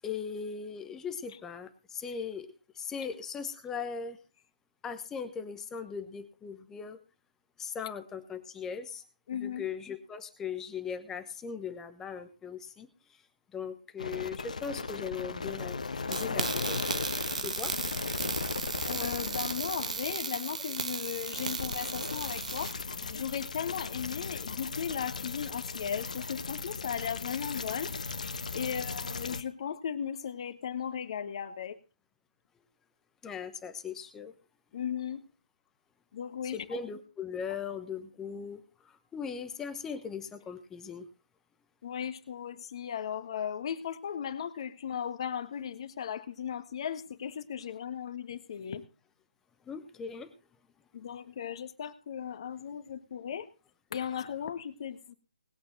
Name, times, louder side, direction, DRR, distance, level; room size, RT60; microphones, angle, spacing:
voice 1, 0.0-2.5 2.7-4.2 4.8-7.0 7.6-9.0 9.3-12.9 13.5-15.8 16.0-16.8 17.4-17.7 33.2-34.3 36.4-41.1 49.6-50.3, left 6 dB, 10° left, 8 dB, 1.0 m, -39 dB
voice 2, 9.3-9.7 18.9-22.7 23.1-27.9 28.5-31.8 34.7-35.2 36.1-36.8 41.8-48.8 50.9-53.5 53.9-55.1, left 8 dB, 45° left, 10 dB, 1.5 m, -36 dB
sound 1, 14.0-29.4, left 4 dB, 65° left, 1.4 m, -37 dB
sound 2, 16.1-22.7, right 4 dB, 60° right, 1.7 m, -35 dB
20.0 x 8.5 x 4.1 m, 0.31 s
figure-of-eight pair, 140°, 4 cm